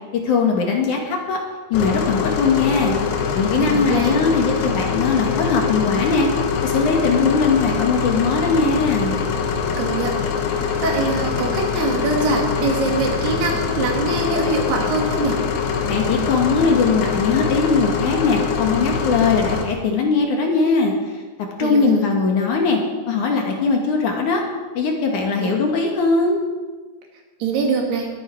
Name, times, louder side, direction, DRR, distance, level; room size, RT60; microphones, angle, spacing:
voice 1, 0.2-1.4 1.7-3.0 3.3-6.3 6.6-9.2 15.9-20.9 21.6-22.8 23.1-24.4 24.7-26.4, left 4 dB, 60° left, 1 dB, 2.7 m, -20 dB
sound 1, 1.7-19.6, left 6 dB, 85° left, 3.3 m, -23 dB
voice 2, 3.6-4.2 9.8-10.1 10.8-15.4 21.6-22.0 25.4-25.5 27.4-28.1, right 3 dB, 90° right, 0 dB, 4.2 m, -23 dB
21.0 x 9.1 x 4.6 m, 1.3 s
omnidirectional pair, 4.5 m